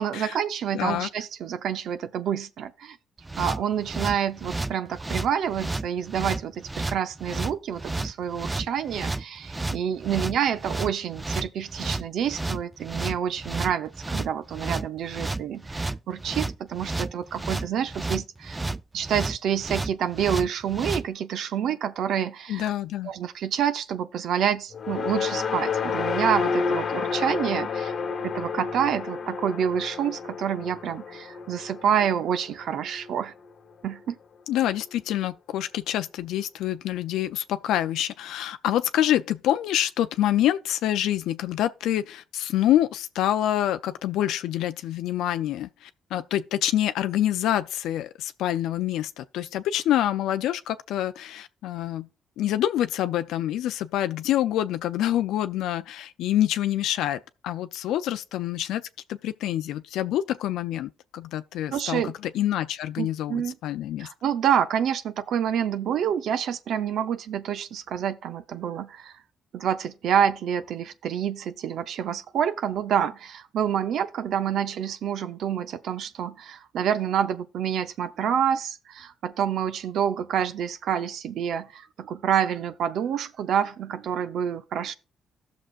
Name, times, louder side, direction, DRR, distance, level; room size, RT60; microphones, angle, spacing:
voice 1, 0.0-3.0 3.4-18.6 18.9-22.7 23.0-27.9 28.2-33.3 33.8-34.2 61.7-62.1 63.0-63.6 64.0-69.1 69.5-84.9, right 8 dB, 75° right, 0.6 m, -28 dB
voice 2, 0.7-1.1 22.5-23.1 34.5-52.1 52.4-58.8 59.1-64.1, left 12 dB, 85° left, 0.4 m, -26 dB
sound 1, 3.2-21.1, right 2 dB, 15° right, 0.4 m, -31 dB
sound 2, 24.7-33.1, left 5 dB, 50° left, 1.0 m, -30 dB
16.0 x 6.2 x 2.4 m
cardioid pair, 90°, 0 cm